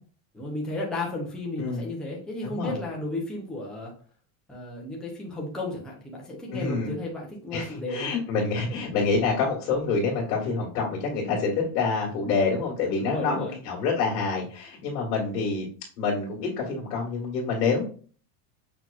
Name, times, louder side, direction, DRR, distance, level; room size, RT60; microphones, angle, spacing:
voice 1, 0.3-3.9 4.5-8.1 13.0-13.6, left 2 dB, ahead, -3 dB, 0.5 m, -33 dB
voice 2, 2.4-2.8 6.5-6.9 7.5-15.7 16.0-17.8, left 4 dB, 80° left, -4 dB, 1.8 m, -27 dB
6.0 x 2.9 x 2.4 m, 0.42 s
cardioid pair, 165°, 47 cm